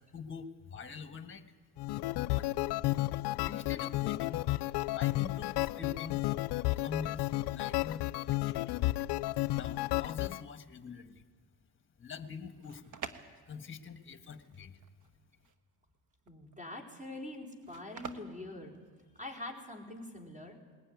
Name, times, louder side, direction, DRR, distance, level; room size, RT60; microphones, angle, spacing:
voice 1, 0.0-1.5 2.3-2.5 3.5-4.5 4.9-6.2 6.8-8.0 8.3-8.9 9.5-11.3 12.0-13.0 13.5-14.8, left 6 dB, 25° left, 8 dB, 1.7 m, -45 dB
sound 1, 1.8-10.4, left 18 dB, 70° left, 0.5 m, -32 dB
sound 2, 12.4-19.5, right 6 dB, 45° right, 1.3 m, -49 dB
voice 2, 16.3-18.8 19.1-20.6, left 1 dB, 20° right, 1 dB, 4.5 m, -44 dB
20.5 x 15.5 x 9.5 m, 1.5 s
supercardioid pair, 90°, 43 cm